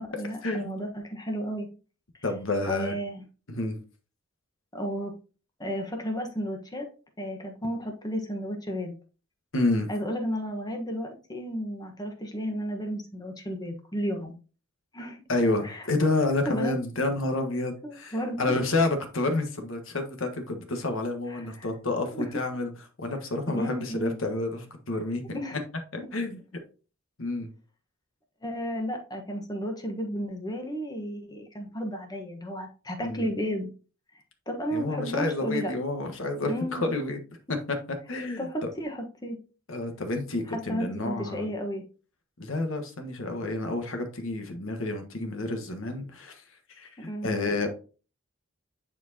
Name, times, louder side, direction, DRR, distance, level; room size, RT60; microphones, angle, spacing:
voice 1, 0.0-1.7 2.7-3.2 4.7-5.1 5.6-6.9 7.2-8.9 9.9-14.3 14.9-15.2 15.6-15.8 16.4-16.8 17.8-18.5 21.3-21.7 22.1-22.2 23.5-24.2 25.3-25.6 28.4-33.7 34.5-35.7 36.4-37.0 38.4-39.4 40.5-41.8 47.1-47.4, equal, 20° left, 3 dB, 1.2 m, -33 dB
voice 2, 2.2-3.0 3.5-3.8 9.5-9.9 15.3-22.7 23.0-25.4 25.9-26.4 27.2-27.5 33.0-33.3 34.7-37.2 38.1-38.5 39.7-41.5 42.4-46.4 46.8-47.7, left 2 dB, 65° left, 5 dB, 1.4 m, -29 dB
10.0 x 4.4 x 2.8 m, 0.36 s
head